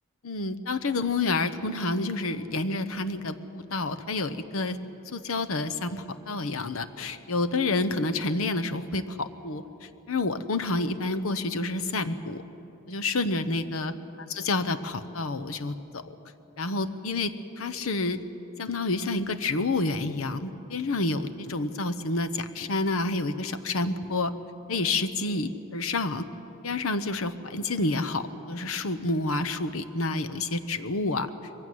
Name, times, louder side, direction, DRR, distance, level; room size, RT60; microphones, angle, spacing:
voice 1, 0.2-4.8 5.1-12.4 12.9-13.9 14.3-16.0 16.6-18.2 18.6-24.3 24.7-26.3 26.6-31.3, left 2 dB, 85° left, 10 dB, 0.9 m, -29 dB
22.0 x 16.0 x 9.3 m, 3.0 s
head